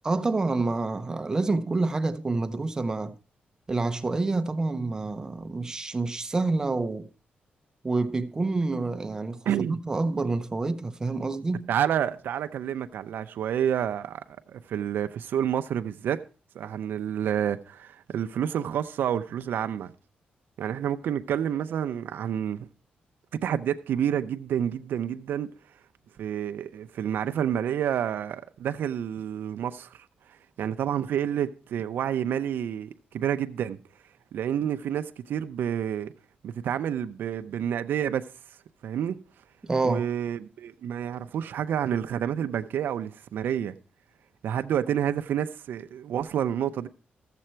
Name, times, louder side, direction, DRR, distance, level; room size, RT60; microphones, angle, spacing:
voice 1, 0.1-3.2 3.7-7.1 7.8-11.7 39.6-40.1, right 3 dB, 20° right, 0.6 m, -28 dB
voice 2, 9.5-9.8 11.7-16.2 16.5-19.9 20.6-22.7 23.4-25.5 26.2-33.8 34.3-36.1 36.4-38.3 38.8-39.2 39.8-43.7 44.4-46.9, right 9 dB, 80° right, 0.5 m, -29 dB
14.0 x 7.6 x 4.4 m
wide cardioid pair, 160°, 3 cm